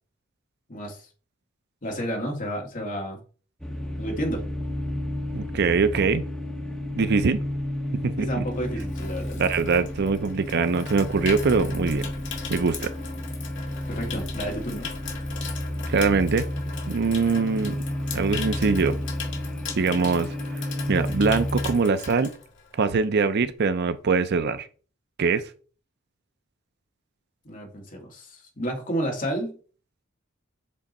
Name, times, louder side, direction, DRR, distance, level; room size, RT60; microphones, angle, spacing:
voice 1, 0.7-1.1 1.8-3.2 4.0-4.4 8.2-9.4 13.9-14.9 27.4-29.6, equal, 40° left, 2.1 m, -31 dB
sound 1, 3.6-21.8, left 1 dB, 5° left, 1.0 m, -31 dB
voice 2, 5.3-6.2 6.9-7.4 8.0-8.4 9.4-12.1 12.5-12.9 15.9-16.5 16.9-17.8 18.1-19.0 19.8-20.3 20.9-22.3 22.8-24.7 25.2-25.5, right 4 dB, 55° right, 0.5 m, -23 dB
Water tap faucet / Sink (filling or washing), 8.0-23.0 23.3-23.6, left 7 dB, 65° left, 1.8 m, -39 dB
7.4 x 3.7 x 4.2 m
head